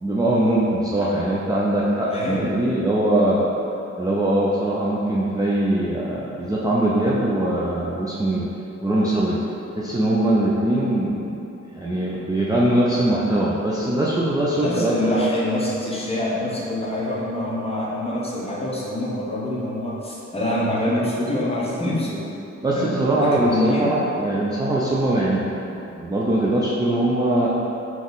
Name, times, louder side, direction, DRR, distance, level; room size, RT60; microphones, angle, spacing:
voice 1, 0.0-3.5 4.0-8.5 8.8-9.4 9.7-11.4 11.7-15.2 22.6-27.5, right 1 dB, 15° right, -7 dB, 0.3 m, -21 dB
voice 2, 2.1-2.5 14.6-22.2 22.7-23.9, left 1 dB, 20° left, -6 dB, 0.7 m, -25 dB
3.7 x 3.0 x 3.9 m, 2.9 s
wide cardioid pair, 145°, 29 cm